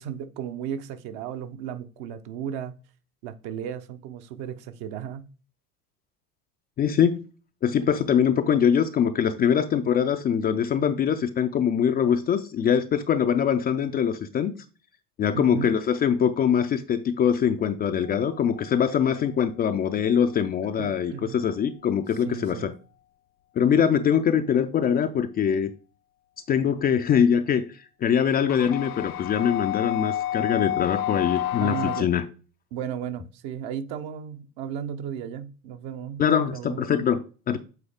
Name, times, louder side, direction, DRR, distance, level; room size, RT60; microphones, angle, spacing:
voice 1, 0.0-2.7 3.2-5.2 15.3-15.7 20.8-21.5 22.2-22.7 31.6-32.1 32.7-36.2 36.5-36.9, right 9 dB, 50° right, 8 dB, 0.9 m, -34 dB
voice 2, 6.8-7.3 7.6-14.5 15.2-22.7 23.6-25.7 26.5-32.2 36.2-37.6, left 8 dB, 20° left, 7 dB, 0.4 m, -23 dB
sound 1, 18.0-18.9 28.5-32.0, left 12 dB, 75° left, 0.5 m, -30 dB
8.2 x 3.8 x 3.6 m, 0.36 s
figure-of-eight pair, 75°, 44 cm